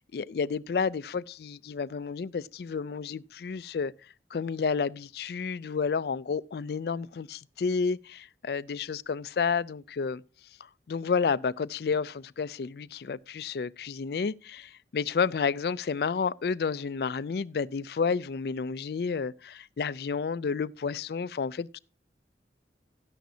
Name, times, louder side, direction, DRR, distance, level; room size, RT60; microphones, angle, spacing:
voice 1, 0.0-3.9 4.3-10.2 10.9-21.8, left 5 dB, 60° left, 0.4 m, -30 dB
12.5 x 10.0 x 2.7 m
head